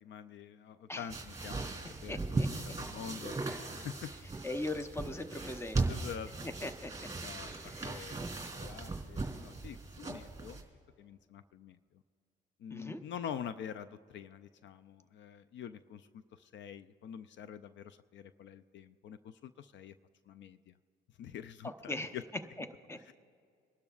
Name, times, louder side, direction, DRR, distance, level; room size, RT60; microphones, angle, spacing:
voice 1, 0.0-4.1 5.9-6.3 7.2-10.6 11.0-11.8 12.6-19.9 20.3-20.8 21.2-22.2 23.1-23.2, left 8 dB, 65° left, 13 dB, 0.4 m, -46 dB
sound 1, 1.1-10.6, right 3 dB, 15° right, 3.3 m, -38 dB
voice 2, 2.1-2.5 4.4-5.9 6.4-6.9 7.7-8.2 12.7-13.0 21.6-22.2 22.6-23.0, left 2 dB, 10° left, 9 dB, 0.8 m, -40 dB
26.0 x 12.0 x 2.4 m, 2.3 s
cardioid pair, 90°, 20 cm